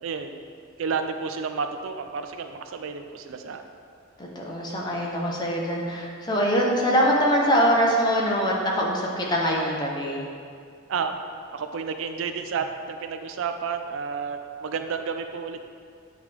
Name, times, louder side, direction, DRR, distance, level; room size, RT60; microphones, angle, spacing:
voice 1, 0.0-0.4 0.8-3.6 10.9-11.2 11.5-15.6, right 5 dB, 70° right, 7 dB, 0.4 m, -31 dB
voice 2, 4.2-10.2, equal, 20° left, -3 dB, 0.8 m, -23 dB
8.9 x 3.3 x 3.5 m, 2.2 s
head